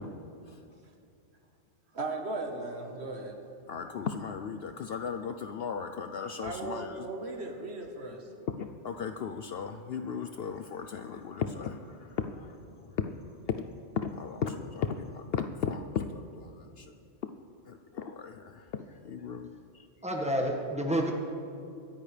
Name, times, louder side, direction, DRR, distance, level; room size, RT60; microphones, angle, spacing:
voice 1, 1.9-3.4 6.4-8.3, right 2 dB, 60° right, 3 dB, 1.5 m, -37 dB
voice 2, 3.7-7.1 8.5-12.5 13.0-13.2 13.5-13.7 14.0-16.9 17.2-17.3 17.7-19.9, left 6 dB, 60° left, 7 dB, 0.7 m, -36 dB
voice 3, 20.0-21.1, equal, 5° right, 0 dB, 1.5 m, -29 dB
24.0 x 10.0 x 3.3 m, 2.6 s
omnidirectional pair, 1.3 m